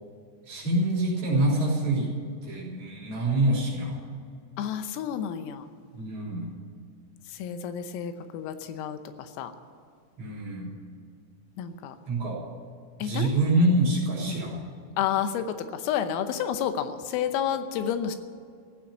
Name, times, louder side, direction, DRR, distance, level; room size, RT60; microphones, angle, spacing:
voice 1, 0.4-2.1 2.4-4.0 5.9-6.5 10.2-10.7 12.1-12.4 13.0-14.6, right 1 dB, 40° right, -4 dB, 4.3 m, -25 dB
voice 2, 4.6-5.7 7.3-9.5 11.6-12.0 13.0-13.3 14.3-14.5 15.0-18.2, left 9 dB, 85° left, 9 dB, 3.6 m, -30 dB
15.5 x 8.9 x 9.5 m, 2.2 s
omnidirectional pair, 5.9 m